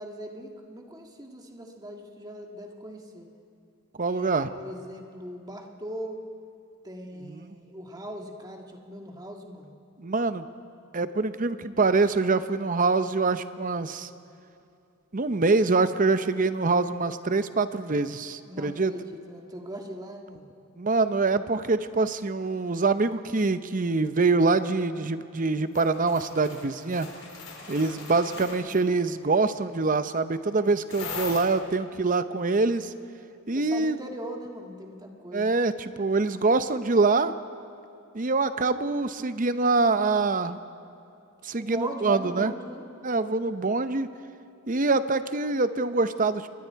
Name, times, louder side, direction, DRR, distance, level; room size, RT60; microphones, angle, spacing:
voice 1, 0.0-3.3 4.1-6.2 6.8-9.7 18.4-20.5 27.7-28.1 33.5-35.5 41.6-42.9, equal, 20° right, 2 dB, 1.7 m, -40 dB
voice 2, 4.0-4.5 7.2-7.5 10.0-10.4 10.9-14.1 15.1-18.9 20.8-27.1 27.7-32.9 33.5-34.0 35.3-37.4 38.1-40.6 41.4-42.5 43.0-44.1 44.7-46.5, right 3 dB, 40° right, 12 dB, 0.7 m, -25 dB
sound 1, 25.7-28.8 30.9-31.4, left 4 dB, 75° left, 4.7 m, -39 dB
28.0 x 22.0 x 4.7 m, 2.6 s
head